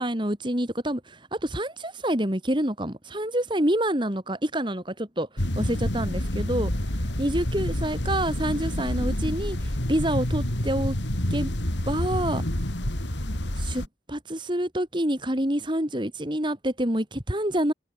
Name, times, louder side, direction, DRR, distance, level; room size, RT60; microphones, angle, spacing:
voice 1, 0.0-6.7 7.2-11.0 11.3-11.5 11.9-12.4 13.6-13.8 14.1-17.7, right 1 dB, 25° right, 3.2 m, -27 dB
sound 1, 5.4-13.9, left 1 dB, 80° left, 3.9 m, -28 dB
head